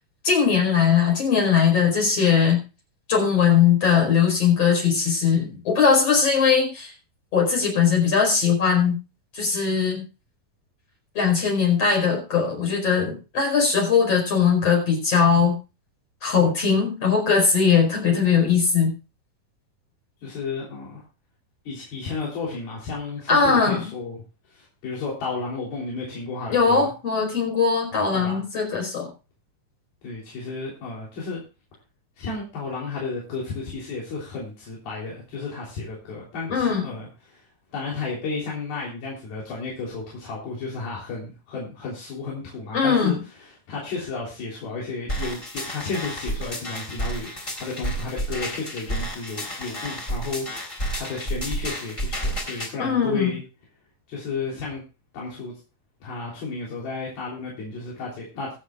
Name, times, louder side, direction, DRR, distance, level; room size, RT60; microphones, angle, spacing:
voice 1, 0.2-2.6 3.1-6.9 7.3-8.9 9.3-10.0 11.1-15.6 16.2-18.9 23.3-23.9 26.5-29.1 36.5-36.8 42.7-43.2 52.8-53.3, left 6 dB, 40° left, 0 dB, 5.9 m, -20 dB
voice 2, 20.2-21.0 21.7-24.2 24.5-26.9 27.9-28.4 30.0-31.4 32.2-37.4 37.7-53.4 54.1-54.8 55.1-55.6 56.0-58.5, left 4 dB, 85° left, -4 dB, 5.4 m, -33 dB
sound 1, 45.1-52.7, right 1 dB, 20° left, 3.9 m, -31 dB
24.0 x 8.3 x 2.4 m, 0.31 s
omnidirectional pair, 4.2 m